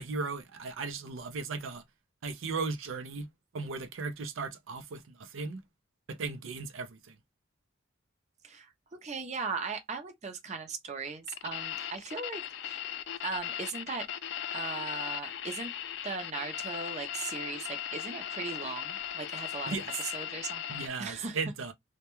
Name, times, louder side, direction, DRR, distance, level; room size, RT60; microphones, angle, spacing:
voice 1, 0.0-1.8 2.2-3.3 3.5-5.6 6.1-7.2 19.7-19.8 20.7-21.7, right 4 dB, 85° right, 0.5 m, -36 dB
voice 2, 9.0-12.8 13.2-14.1 14.5-15.7 16.0-21.4, right 4 dB, 35° right, 0.5 m, -38 dB
sound 1, 11.3-20.9, left 11 dB, 60° left, 0.3 m, -38 dB
2.2 x 2.2 x 2.8 m
head